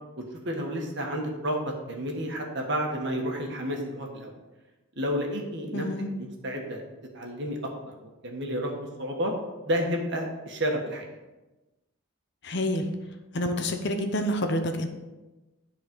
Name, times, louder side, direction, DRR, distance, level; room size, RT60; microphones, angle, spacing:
voice 1, 0.4-4.3 4.9-5.8 6.2-6.8 7.1-7.6 7.9-9.3 9.6-11.1, equal, 55° right, 1 dB, 1.6 m, -31 dB
voice 2, 5.7-6.1 12.4-12.9 13.3-14.9, left 1 dB, 55° left, 6 dB, 0.9 m, -28 dB
10.5 x 4.3 x 5.4 m, 1.1 s
head